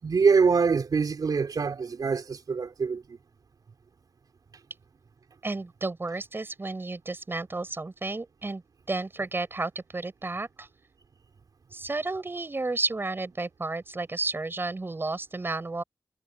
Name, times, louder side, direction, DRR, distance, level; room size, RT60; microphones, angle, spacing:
voice 1, 0.0-3.2, right 5 dB, 85° right, 4.7 m, -24 dB
voice 2, 5.4-8.6 8.9-10.7 11.7-15.8, right 3 dB, 35° right, 6.3 m, -32 dB
wide cardioid pair, 105°, 6 cm